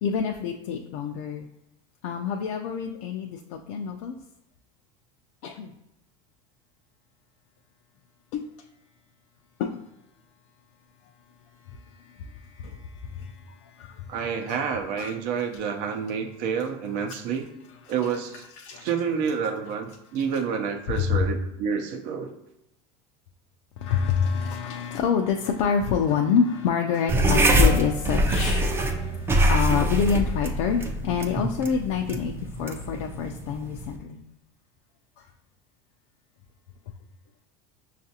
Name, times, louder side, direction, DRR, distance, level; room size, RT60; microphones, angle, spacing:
voice 1, 0.0-1.5 2.0-4.2 5.4-5.7 8.3-8.5 9.6-9.8 11.7-14.1 14.5-14.6 15.0-15.1 18.6-18.9 21.0-21.3 23.8-34.2, left 6 dB, 70° left, 2 dB, 0.4 m, -27 dB
voice 2, 14.1-17.5 17.9-18.4 18.8-22.3, right 6 dB, 60° right, 4 dB, 0.7 m, -29 dB
sound 1, 27.1-34.0, equal, 15° right, 0.4 m, -24 dB
5.8 x 2.4 x 2.8 m, 0.88 s
supercardioid pair, 125°, 16 cm